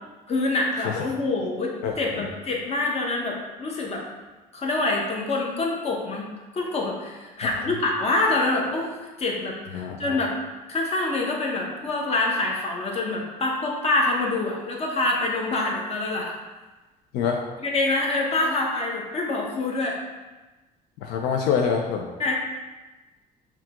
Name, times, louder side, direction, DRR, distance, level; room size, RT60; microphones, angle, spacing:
voice 1, 0.3-4.0 4.5-10.3 10.7-16.3 17.6-20.0 22.2-22.3, left 2 dB, 40° left, -1 dB, 0.9 m, -26 dB
voice 2, 1.8-2.3 7.6-7.7 9.7-10.2 17.1-17.4 21.0-22.1, left 6 dB, 85° left, 2 dB, 0.5 m, -26 dB
5.6 x 2.4 x 2.9 m, 1.2 s
cardioid pair, 110°, 17 cm